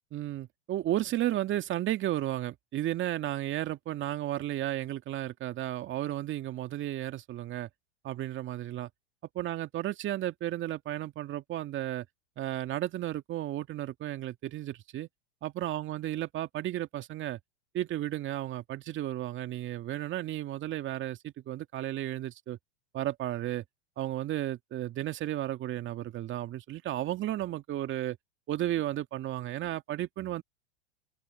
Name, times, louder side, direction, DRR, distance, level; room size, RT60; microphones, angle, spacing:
voice 1, 0.1-7.7 8.0-8.9 9.3-12.1 12.4-15.1 15.4-17.4 17.7-22.6 22.9-23.6 24.0-28.2 28.5-30.4, right 13 dB, 35° right, 2.2 m, -33 dB
open air
hypercardioid pair, 110°, 35 cm